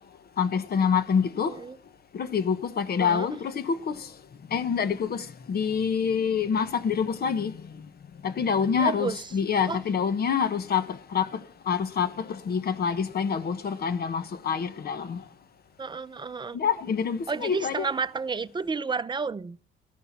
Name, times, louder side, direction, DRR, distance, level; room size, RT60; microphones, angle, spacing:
voice 1, 0.4-1.6 2.1-4.1 4.5-7.9 8.2-15.2 16.5-17.9, left 6 dB, 50° left, 1.2 m, -27 dB
voice 2, 8.8-9.3 9.7-9.8 15.8-16.6 17.3-19.6, right 4 dB, 25° right, 0.7 m, -31 dB
14.5 x 12.5 x 4.2 m
cardioid pair, 90°, 20 cm